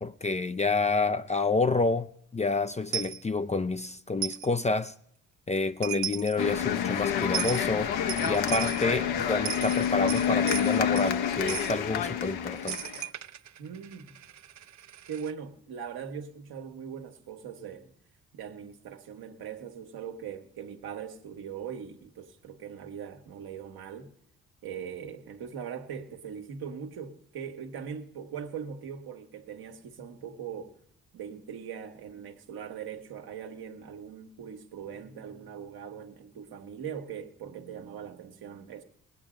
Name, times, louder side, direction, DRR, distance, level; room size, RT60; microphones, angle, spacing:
voice 1, 0.0-2.1 2.3-4.9 5.5-7.9 8.3-12.8, left 3 dB, 20° left, 0.5 m, -28 dB
Coin (dropping), 2.9-3.2 4.2-4.5 5.6-5.7 5.8-6.4 7.3-7.7 8.1-8.8 9.3-11.1 11.5-11.7 12.7-15.3, right 10 dB, 45° right, 0.6 m, -36 dB
sound 1, 6.4-13.1, left 9 dB, 70° left, 1.0 m, -28 dB
voice 2, 13.6-14.1 15.1-17.9 18.3-24.1 24.6-30.8 31.1-38.8, right 7 dB, 70° right, 1.5 m, -41 dB
20.0 x 8.9 x 5.1 m
hypercardioid pair, 50°, 39 cm